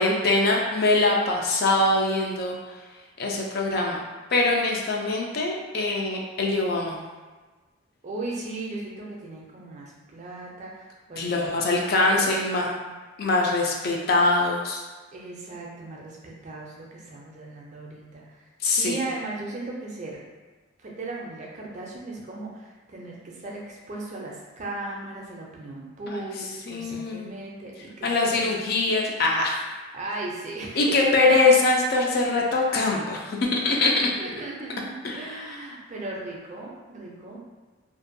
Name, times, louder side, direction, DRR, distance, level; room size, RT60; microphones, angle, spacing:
voice 1, 0.0-2.6 3.2-4.0 4.3-7.0 11.2-12.7 13.2-14.8 18.6-19.0 26.1-26.2 26.7-27.3 28.0-29.6 30.8-34.1 35.0-35.3, left 2 dB, 45° left, -1 dB, 0.3 m, -23 dB
voice 2, 8.0-11.6 12.1-12.9 15.1-18.4 18.6-20.2 20.8-28.4 29.9-31.4 34.2-37.4, right 2 dB, 35° right, -3 dB, 0.4 m, -37 dB
2.5 x 2.2 x 2.5 m, 1.3 s
head